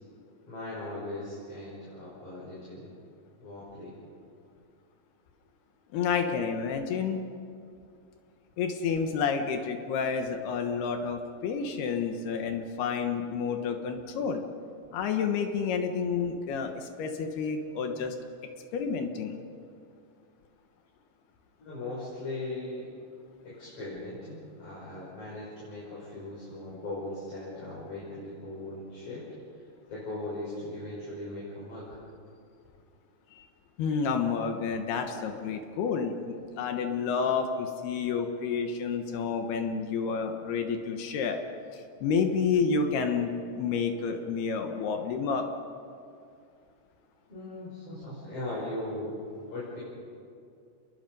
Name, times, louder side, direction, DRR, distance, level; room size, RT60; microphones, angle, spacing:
voice 1, 0.5-2.9 3.4-3.9 21.6-22.9 23.4-29.2 29.9-32.0 47.3-49.1 49.5-49.8, left 2 dB, 35° left, -7 dB, 6.6 m, -39 dB
voice 2, 5.9-7.2 8.6-14.4 14.9-18.1 18.7-19.4 33.3-33.5 33.8-41.4 41.7-45.5, left 5 dB, 70° left, 5 dB, 3.0 m, -30 dB
29.0 x 21.5 x 5.4 m, 2.4 s
omnidirectional pair, 5.2 m